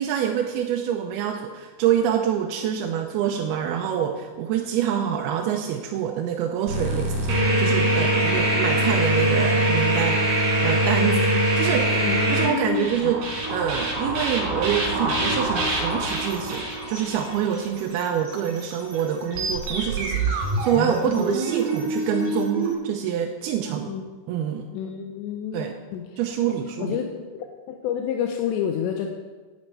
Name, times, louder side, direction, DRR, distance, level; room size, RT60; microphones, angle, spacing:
voice 1, 0.0-11.2 11.6-12.0 12.3-24.0 24.3-24.7 25.5-25.8 26.2-27.0, right 9 dB, 80° right, 3 dB, 2.5 m, -26 dB
sound 1, 6.7-22.7, right 1 dB, 50° right, 4.0 m, -24 dB
voice 2, 11.0-11.5 12.0-13.1 23.9-24.0 24.7-25.7 25.9-26.0 26.8-27.1 27.3-29.1, left 9 dB, 90° left, 4 dB, 3.1 m, -29 dB
9.6 x 8.6 x 9.2 m, 1.4 s
omnidirectional pair, 4.9 m